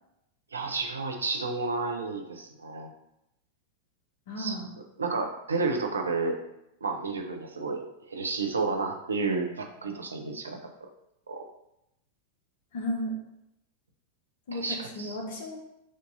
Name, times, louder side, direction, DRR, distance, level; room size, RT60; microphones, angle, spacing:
voice 1, 0.5-2.9 4.4-4.6 5.0-6.4 6.8-7.8 8.1-10.6 11.3-11.4 14.5-15.2, right 3 dB, 75° right, 3 dB, 0.6 m, -31 dB
voice 2, 4.3-4.7 12.7-13.1 14.5-15.6, equal, 55° left, 2 dB, 1.0 m, -34 dB
6.3 x 2.6 x 2.7 m, 0.84 s
figure-of-eight pair, 90°, 0 cm